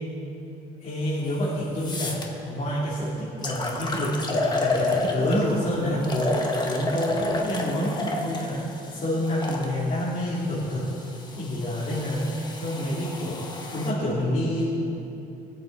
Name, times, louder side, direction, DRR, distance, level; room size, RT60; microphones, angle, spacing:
voice 1, 0.8-10.9 11.4-12.2 12.6-13.4 13.7-14.6, equal, 50° left, -9 dB, 3.9 m, -28 dB
sound 1, 1.3-1.4 1.8-2.3 2.9-3.0 3.4-5.5 6.0-9.7 10.5-13.9, left 2 dB, 25° left, 1.7 m, -30 dB
23.0 x 8.2 x 4.5 m, 2.8 s
cardioid pair, 110°, 17 cm